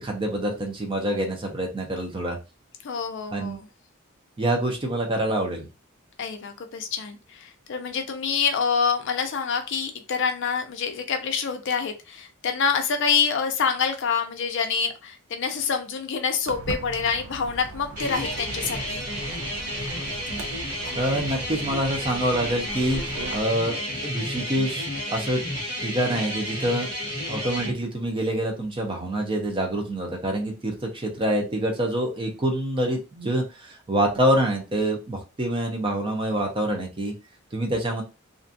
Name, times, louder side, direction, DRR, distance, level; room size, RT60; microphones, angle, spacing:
voice 1, 0.0-2.4 3.3-3.6 4.4-5.7 21.0-23.0 23.3-25.4 25.8-26.9 27.3-37.1 37.5-38.0, right 1 dB, 25° right, 2 dB, 0.5 m, -26 dB
voice 2, 2.8-3.6 6.2-19.1, left 6 dB, 60° left, 5 dB, 0.5 m, -26 dB
Walk footsteps, 16.5-23.4, right 3 dB, 75° right, 0.4 m, -38 dB
sound 1, 18.0-27.7, equal, 40° right, 1.3 m, -31 dB
2.5 x 2.2 x 2.6 m, 0.28 s
head